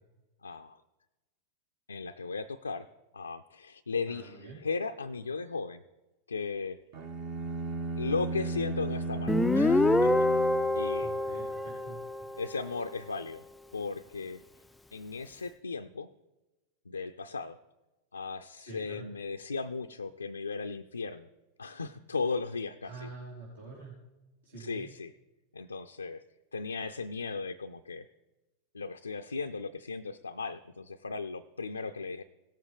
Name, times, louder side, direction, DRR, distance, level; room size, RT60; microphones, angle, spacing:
voice 1, 0.4-0.8 1.9-2.9 3.1-5.8 6.3-6.8 7.9-10.3 10.7-11.1 12.4-13.4 13.7-14.4 14.9-16.1 16.9-17.6 18.1-21.3 21.6-23.1 24.6-25.1 25.5-26.2 26.5-28.0 28.7-32.2, left 4 dB, 80° left, 6 dB, 0.4 m, -36 dB
voice 2, 4.1-4.6 11.0-12.0 18.6-19.0 22.8-24.0 24.4-24.9, right 3 dB, 70° right, -6 dB, 3.4 m, -46 dB
sound 1, 6.9-11.3, right 2 dB, 40° right, 1.1 m, -35 dB
Guitar, 9.3-12.7, left 2 dB, 5° left, 0.3 m, -26 dB
17.5 x 7.4 x 3.5 m, 1.1 s
figure-of-eight pair, 90°, 0 cm